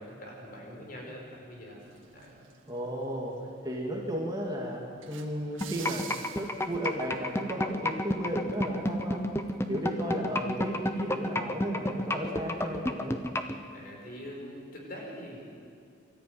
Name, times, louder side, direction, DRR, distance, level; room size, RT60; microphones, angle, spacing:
voice 1, 0.0-1.8 2.1-2.4 9.8-10.2 13.7-15.4, equal, 45° left, -1 dB, 5.0 m, -43 dB
sound 1, 1.8-7.4, right 7 dB, 80° right, 1.9 m, -49 dB
voice 2, 2.7-3.3 3.6-6.1 6.4-9.3 9.7-13.1, equal, 20° right, -2 dB, 2.4 m, -34 dB
sound 2, 5.6-13.5, left 1 dB, 15° left, 0.9 m, -29 dB
24.5 x 13.5 x 9.2 m, 2.4 s
head